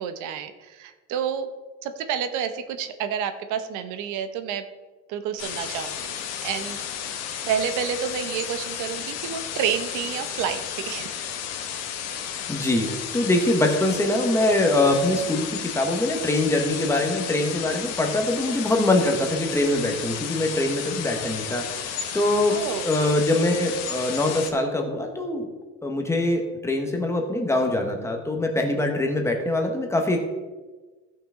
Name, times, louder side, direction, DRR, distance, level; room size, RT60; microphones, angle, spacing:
voice 1, 0.0-1.5 1.8-4.6 5.1-6.1 6.4-6.8 7.5-11.1 22.5-22.9, right 8 dB, 80° right, 9 dB, 0.9 m, -29 dB
sound 1, 5.4-24.5, left 8 dB, 60° left, 1.2 m, -33 dB
voice 2, 12.5-21.9 22.1-22.6 22.8-25.5 25.8-30.2, left 1 dB, 10° left, 2 dB, 1.0 m, -23 dB
15.5 x 5.8 x 3.7 m, 1.3 s
cardioid pair, 165°, 30 cm